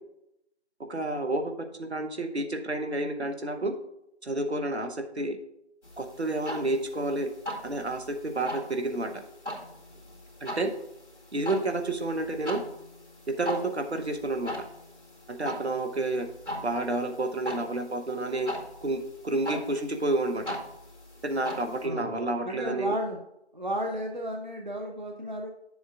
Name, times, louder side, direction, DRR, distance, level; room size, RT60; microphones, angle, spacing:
voice 1, 0.9-1.5 1.8-3.7 4.2-5.4 6.0-7.3 7.6-9.1 10.4-10.7 11.3-12.6 13.4-14.5 15.3-16.3 16.6-18.5 18.8-20.6 21.2-22.9, right 2 dB, 75° right, 6 dB, 0.9 m, -30 dB
sound 1, 5.8-21.9, left 1 dB, 90° left, 2.3 m, -40 dB
voice 2, 22.4-23.2 23.5-25.5, equal, 45° right, 2 dB, 0.6 m, -33 dB
8.8 x 7.1 x 2.4 m, 0.82 s
figure-of-eight pair, 175°, 33 cm